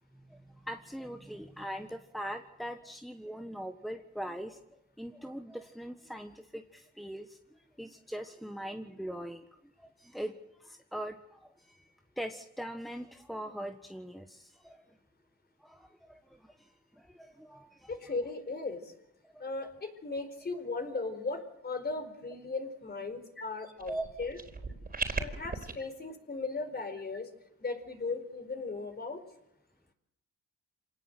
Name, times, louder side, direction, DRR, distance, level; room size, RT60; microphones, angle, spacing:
voice 1, 0.3-9.4 9.8-10.3 10.6-11.8 12.2-14.8 15.6-16.7 16.9-17.9 19.3-19.7 23.4-23.5 23.9-24.0, equal, ahead, 5 dB, 1.5 m, -41 dB
voice 2, 17.9-18.9 19.4-24.4 25.2-27.3 27.6-29.2, left 3 dB, 35° left, 7 dB, 4.6 m, -37 dB
sound 1, 23.8-25.7, right 4 dB, 30° right, 4.5 m, -37 dB
26.5 x 18.5 x 8.0 m, 0.84 s
cardioid pair, 90°, 30 cm